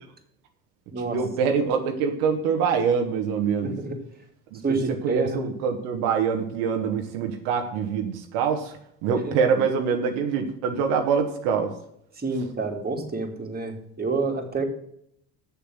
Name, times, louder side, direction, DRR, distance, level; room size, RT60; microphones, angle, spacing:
voice 1, 1.0-3.7 4.5-4.8 5.0-8.8 9.0-11.7, right 6 dB, 75° right, 4 dB, 1.4 m, -25 dB
voice 2, 3.6-4.0 4.6-5.5 9.2-9.4 12.2-14.6, right 3 dB, 25° right, 2 dB, 2.7 m, -28 dB
7.4 x 7.0 x 7.5 m, 0.72 s
hypercardioid pair, 70°, 40 cm